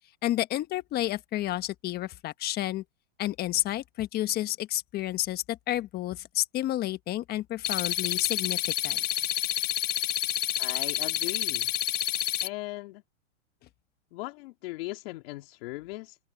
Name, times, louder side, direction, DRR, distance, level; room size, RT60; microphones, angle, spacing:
voice 1, 0.2-2.8 3.2-9.0, left 14 dB, 25° left, 1.3 m, -30 dB
sound 1, 7.6-12.5, left 12 dB, 65° left, 1.7 m, -29 dB
voice 2, 10.6-11.7 12.4-13.0 14.1-16.2, left 21 dB, 45° left, 2.7 m, -38 dB
open air
hypercardioid pair, 135°, 39 cm